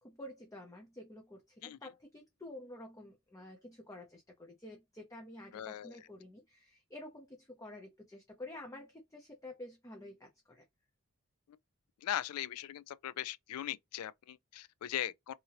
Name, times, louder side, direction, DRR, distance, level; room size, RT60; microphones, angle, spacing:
voice 1, 0.0-10.6, left 1 dB, 15° left, 0.6 m, -50 dB
voice 2, 5.5-6.0 12.0-15.3, left 11 dB, 90° left, 0.3 m, -39 dB
2.7 x 2.7 x 2.8 m
head